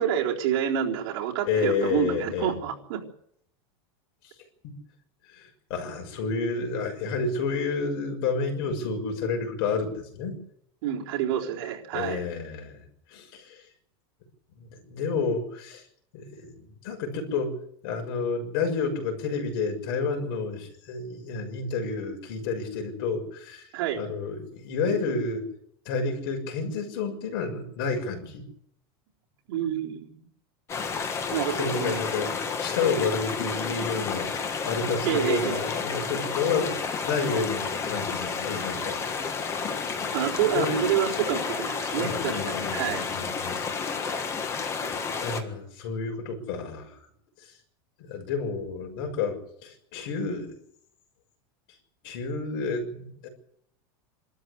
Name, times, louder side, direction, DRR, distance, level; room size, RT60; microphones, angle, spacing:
voice 1, 0.0-3.0 10.8-12.2 23.7-24.0 29.5-30.2 31.3-32.0 35.1-35.6 40.1-42.4 42.7-43.0 44.8-44.9, right 10 dB, 60° right, -2 dB, 4.0 m, -28 dB
voice 2, 1.4-2.5 4.6-4.7 5.3-10.4 11.9-12.8 13.1-13.6 14.6-15.8 16.1-16.6 16.8-23.7 23.9-25.5 25.8-28.4 31.3-34.3 34.6-36.7 37.0-39.0 40.5-40.8 42.0-44.3 45.2-46.9 48.0-50.5 52.0-53.3, left 4 dB, 60° left, 3 dB, 6.5 m, -30 dB
sound 1, 30.7-45.4, left 5 dB, 20° left, 1.7 m, -31 dB
25.5 x 13.5 x 8.3 m, 0.73 s
supercardioid pair, 165°, 13 cm